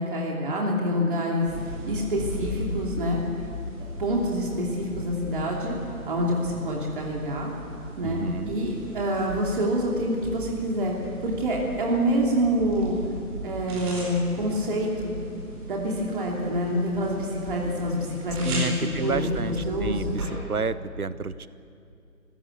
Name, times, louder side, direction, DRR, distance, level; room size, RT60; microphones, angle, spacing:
voice 1, 0.0-1.5 1.9-3.2 4.0-5.7 6.1-7.5 8.0-10.9 11.2-13.0 13.4-15.1 15.7-20.2, equal, 35° right, -2 dB, 2.9 m, -26 dB
sound 1, 1.5-20.3, equal, 20° right, 4.8 m, -37 dB
voice 2, 8.0-8.5 18.4-21.5, right 5 dB, 75° right, 15 dB, 1.1 m, -31 dB
25.0 x 16.0 x 8.2 m, 2.4 s
figure-of-eight pair, 155°, 44 cm